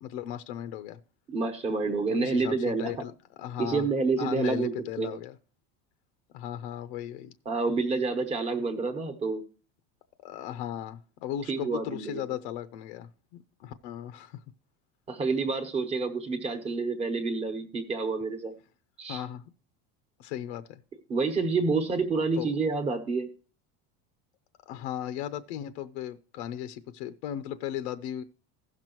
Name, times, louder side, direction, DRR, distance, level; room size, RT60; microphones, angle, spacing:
voice 1, 0.0-1.0 2.1-3.9 4.2-5.4 6.3-7.3 10.2-13.1 13.6-14.4 19.1-19.4 20.2-20.6 22.4-22.5 24.7-28.2, left 11 dB, 90° left, 0.7 m, -36 dB
voice 2, 1.3-2.9 3.6-5.2 7.4-9.4 11.5-12.2 15.1-18.5 19.0-19.2 21.1-23.3, right 4 dB, 20° right, 1.1 m, -28 dB
16.5 x 6.0 x 3.0 m
cardioid pair, 175°, 34 cm